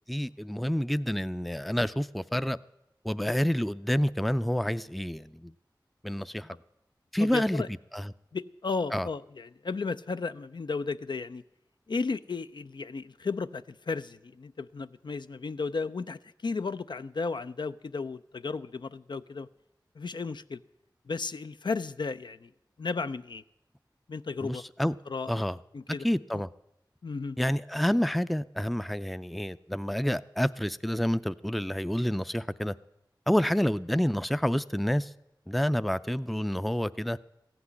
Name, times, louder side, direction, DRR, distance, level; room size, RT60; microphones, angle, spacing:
voice 1, 0.1-2.6 3.0-5.5 6.0-6.6 7.1-7.6 7.9-8.1 8.9-9.1 24.4-24.9 25.3-25.6 26.0-26.5 27.4-32.8 33.3-35.1 35.5-37.2, equal, ahead, 0.4 m, -28 dB
voice 2, 7.2-7.7 8.3-11.4 11.9-19.5 20.0-20.6 21.1-22.5 22.8-23.4 24.1-25.4 25.7-26.1 26.3-26.4 27.0-27.4, left 4 dB, 75° left, 0.4 m, -34 dB
15.0 x 6.0 x 9.6 m
wide cardioid pair, 45°, 8 cm